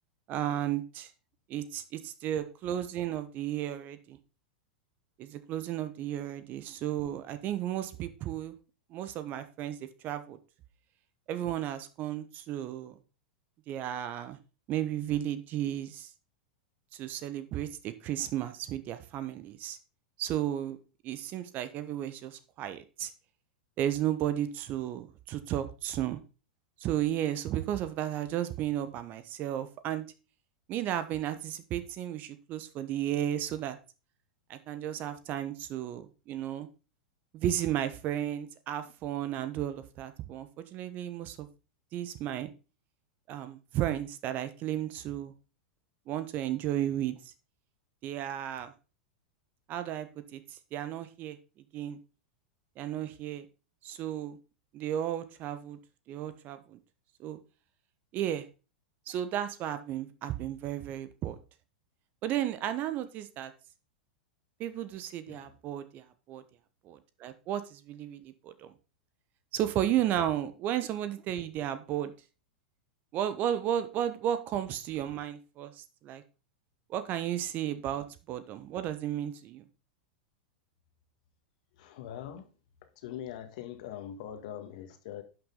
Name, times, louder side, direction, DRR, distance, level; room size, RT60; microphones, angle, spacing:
voice 1, 0.3-1.1 1.5-4.2 5.2-8.5 8.9-10.4 11.3-12.9 13.7-14.4 14.7-16.1 16.9-19.8 20.2-20.8 21.0-23.1 23.8-26.2 26.8-30.0 30.7-33.8 34.5-36.7 37.3-41.5 41.9-42.5 43.3-45.3 46.1-47.2 48.0-48.7 49.7-50.4 50.7-51.4 51.7-52.0 52.8-53.4 53.8-54.4 54.7-55.8 56.1-56.8 57.2-57.4 58.1-58.5 59.1-61.4 62.2-63.5 64.6-66.4 66.8-68.7 69.5-72.1 73.1-76.2 76.9-79.6, right 11 dB, 40° right, 1.2 m, -33 dB
voice 2, 81.8-82.5 83.0-85.2, left 10 dB, 55° left, 1.8 m, -42 dB
11.5 x 6.3 x 3.9 m
figure-of-eight pair, 95°, 5 cm